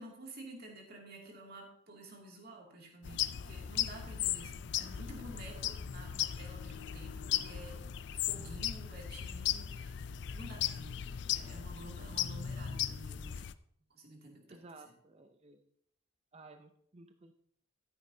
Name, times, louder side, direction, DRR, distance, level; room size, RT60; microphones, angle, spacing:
voice 1, 0.0-7.9 8.1-10.0 10.3-11.0 11.3-13.4 13.9-14.6, right 1 dB, 50° right, 0 dB, 2.6 m, -50 dB
sound 1, 3.0-13.5, left 10 dB, 55° left, 0.4 m, -37 dB
voice 2, 14.5-15.7 16.3-17.3, right 3 dB, 30° right, 6 dB, 0.6 m, -55 dB
13.0 x 9.6 x 2.8 m, 0.67 s
head